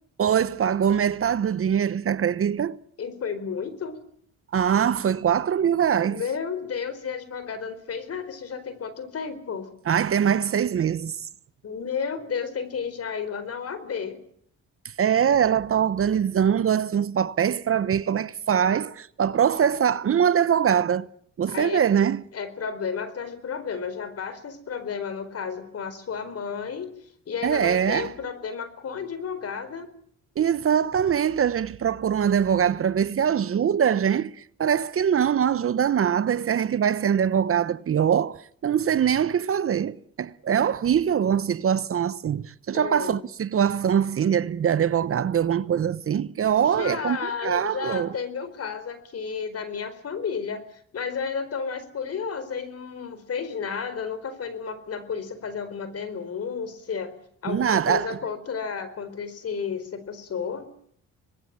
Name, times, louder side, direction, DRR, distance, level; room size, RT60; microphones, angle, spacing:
voice 1, 0.2-2.8 4.5-6.2 9.9-11.3 15.0-21.1 21.4-22.2 27.4-28.1 30.4-47.2 47.4-48.1 57.5-58.2, right 8 dB, 45° right, 1.0 m, -23 dB
voice 2, 3.0-4.0 6.1-9.7 11.6-14.2 21.5-21.8 22.3-26.9 27.3-29.9 42.7-43.2 46.6-57.1 57.4-60.7, left 6 dB, 50° left, 4.5 m, -32 dB
25.5 x 20.0 x 8.8 m
cardioid pair, 90°, 30 cm